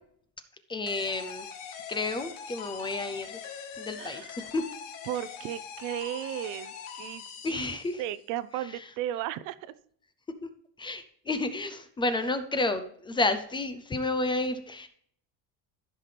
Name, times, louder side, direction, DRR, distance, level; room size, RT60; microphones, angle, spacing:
voice 1, 0.7-1.5 1.9-3.4 3.8-4.6 7.4-8.0 10.8-14.9, left 2 dB, 15° left, 10 dB, 0.5 m, -31 dB
sound 1, 0.9-8.2, left 7 dB, 70° left, 1.5 m, -42 dB
voice 2, 4.0-4.4 5.0-9.7, right 12 dB, 65° right, 16 dB, 0.7 m, -35 dB
14.5 x 5.8 x 3.3 m, 0.64 s
cardioid pair, 165°, 34 cm